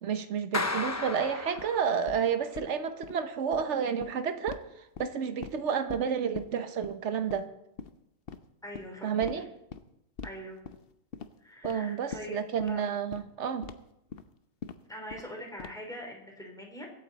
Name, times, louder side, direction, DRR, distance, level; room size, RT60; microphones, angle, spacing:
voice 1, 0.0-7.5 9.0-9.5 11.6-13.6, right 7 dB, 65° right, 10 dB, 1.3 m, -30 dB
Clapping, 0.5-2.3, left 2 dB, 20° left, 0.5 m, -34 dB
sound 1, 1.6-1.7 2.1-2.2 2.5-2.7 3.0-3.1 3.4-3.6 4.0-4.1 4.5-4.6 4.9-5.6 5.9-6.0 6.3-6.5 6.8-6.9 7.3-7.5 7.8-7.9 8.3-8.4 8.7-8.9 9.2-9.3 9.7-9.8 10.2-10.3 10.6-10.8 11.1-11.3 11.6-11.7 12.1-12.2 12.6-12.7 13.1-13.2 13.6-13.7 14.1-14.2 14.6-14.7 15.1-15.3 15.6-15.9, left 6 dB, 55° left, 0.9 m, -41 dB
voice 2, 8.6-9.4 10.2-10.6 11.4-12.8 14.9-16.9, equal, 5° left, -1 dB, 3.3 m, -43 dB
23.5 x 8.8 x 4.1 m, 0.83 s
omnidirectional pair, 1.3 m